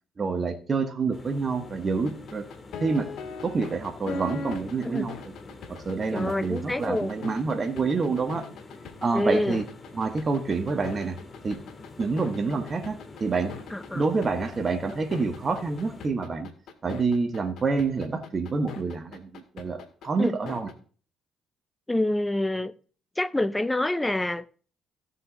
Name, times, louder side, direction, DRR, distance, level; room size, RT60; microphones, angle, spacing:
voice 1, 0.2-2.5 2.8-3.1 3.4-5.1 5.7-8.5 9.0-9.7 9.9-11.2 11.4-11.6 12.0-13.5 13.9-16.5 16.8-20.7, right 4 dB, 35° right, 1.4 m, -27 dB
sound 1, 1.1-16.1, left 3 dB, 25° left, 1.8 m, -47 dB
sound 2, 2.1-20.7, left 4 dB, 70° left, 1.9 m, -40 dB
voice 2, 6.1-7.1 9.1-9.6 13.7-14.0 20.2-20.3 21.9-22.7 23.2-24.5, left 1 dB, 10° left, 0.6 m, -27 dB
16.0 x 5.5 x 4.2 m
cardioid pair, 95°, 0 cm